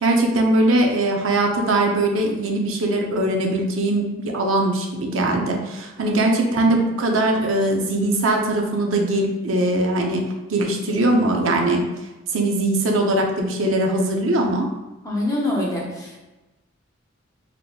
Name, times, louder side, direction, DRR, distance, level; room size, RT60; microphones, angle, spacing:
voice 1, 0.0-10.2 10.5-11.9 12.3-14.7, right 1 dB, 85° right, 2 dB, 0.6 m, -21 dB
voice 2, 15.0-16.2, left 1 dB, 15° left, -4 dB, 0.9 m, -25 dB
4.1 x 2.8 x 2.2 m, 1.1 s
head